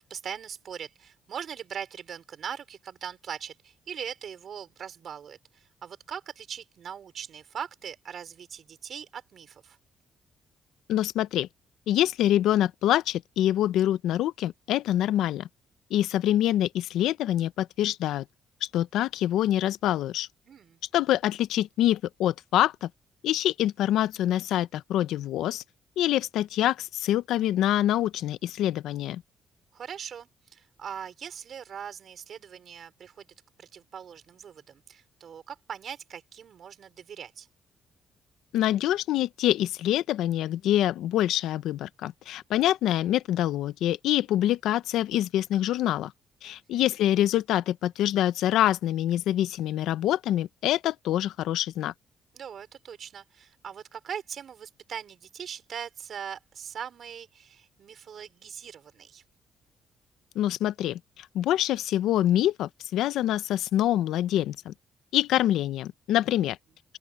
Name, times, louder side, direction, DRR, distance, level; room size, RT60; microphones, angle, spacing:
voice 1, 0.0-9.8 20.5-20.8 29.7-33.3 33.6-37.5 46.4-46.9 52.3-59.2, right 8 dB, 60° right, 4.7 m, -41 dB
voice 2, 10.9-11.5 11.9-15.5 15.9-18.2 18.6-20.3 20.9-22.9 23.2-25.6 26.0-29.2 38.5-46.1 46.4-51.9 60.3-64.7 65.1-66.6, left 12 dB, 85° left, 0.7 m, -25 dB
open air
cardioid pair, 90°, 0 cm